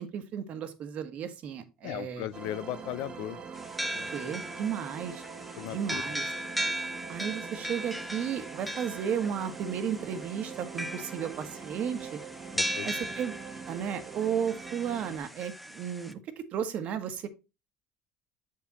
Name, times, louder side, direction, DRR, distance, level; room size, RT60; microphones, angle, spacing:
voice 1, 0.0-2.3 4.0-5.2 5.7-6.2 7.1-12.2 12.8-13.3 13.7-17.3, right 8 dB, 60° right, 1.3 m, -34 dB
voice 2, 1.8-3.4 3.9-4.1 5.6-6.0 12.5-12.9, left 14 dB, 80° left, 0.5 m, -37 dB
sound 1, 2.3-15.2, right 5 dB, 35° right, 1.1 m, -43 dB
sound 2, 3.5-16.1, equal, ahead, 0.6 m, -38 dB
7.2 x 4.8 x 4.2 m
supercardioid pair, 95°, 3 cm